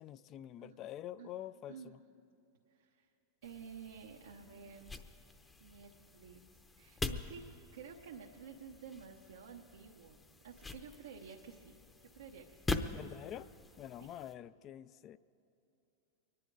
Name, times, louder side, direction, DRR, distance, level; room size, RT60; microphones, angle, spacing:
voice 1, 0.0-1.7 12.9-13.5 13.8-15.2, left 11 dB, 40° left, 16 dB, 0.4 m, -46 dB
voice 2, 1.7-2.0 2.7-3.1 3.4-5.0 5.6-6.4 6.8-7.4 7.7-11.7 12.0-12.6 14.0-14.1, right 6 dB, 90° right, -1 dB, 0.9 m, -52 dB
sound 1, 3.4-14.3, left 3 dB, 15° left, 0.7 m, -45 dB
23.0 x 10.5 x 4.7 m, 2.7 s
hypercardioid pair, 110°, 0 cm